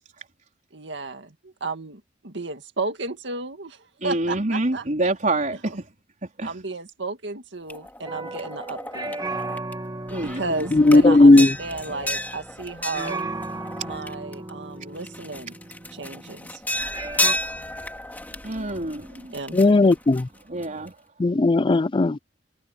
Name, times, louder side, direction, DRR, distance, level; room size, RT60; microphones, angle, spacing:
voice 1, 0.7-4.9 5.5-5.8 6.4-9.2 10.2-13.2 13.8-15.6 15.9-16.6 19.3-19.9, right 3 dB, 70° right, 2.1 m, -33 dB
voice 2, 4.0-5.7 6.4-6.6 10.1-10.7 18.4-19.3 20.5-20.9, right 2 dB, 45° right, 4.2 m, -27 dB
sound 1, 7.7-9.7 10.1-14.5 14.9-20.9, left 1 dB, 10° left, 2.1 m, -32 dB
sound 2, 8.1-12.7 12.9-16.5 16.9-17.3, right 2 dB, 25° right, 2.2 m, -36 dB
voice 3, 10.9-11.5 19.5-20.2 21.2-22.2, left 2 dB, 25° left, 0.4 m, -15 dB
head